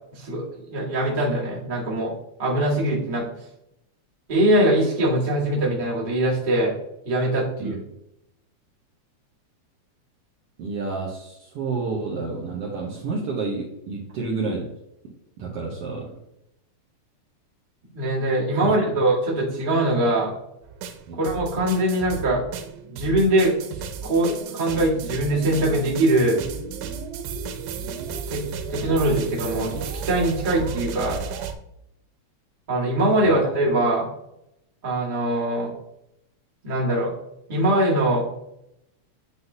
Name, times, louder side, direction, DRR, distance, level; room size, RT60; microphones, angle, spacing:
voice 1, 0.1-2.1 2.4-3.2 4.3-6.7 7.0-7.8 17.9-20.3 21.2-22.4 22.9-26.4 28.3-28.4 28.7-31.2 32.7-34.1 34.8-35.7 36.6-37.1 37.5-38.2, right 1 dB, 20° right, -5 dB, 1.5 m, -22 dB
voice 2, 10.6-14.7 15.0-16.1 18.6-18.7 21.1-21.2 33.2-33.3, right 3 dB, 65° right, -3 dB, 1.8 m, -30 dB
sound 1, 20.6-31.5, right 6 dB, 90° right, 2.1 m, -33 dB
9.7 x 3.8 x 2.7 m, 0.81 s
omnidirectional pair, 3.3 m